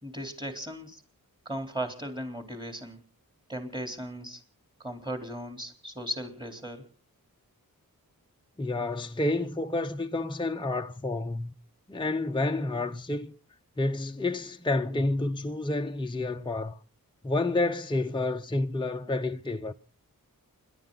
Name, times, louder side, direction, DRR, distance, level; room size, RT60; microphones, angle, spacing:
voice 1, 0.0-1.0 1.5-3.0 3.5-4.4 4.8-6.9, equal, 15° right, 3.9 m, -37 dB
voice 2, 8.6-11.5 11.9-13.3 13.8-16.8 17.2-19.7, left 2 dB, 15° left, 0.8 m, -29 dB
29.0 x 12.0 x 4.0 m
cardioid pair, 55°, 36 cm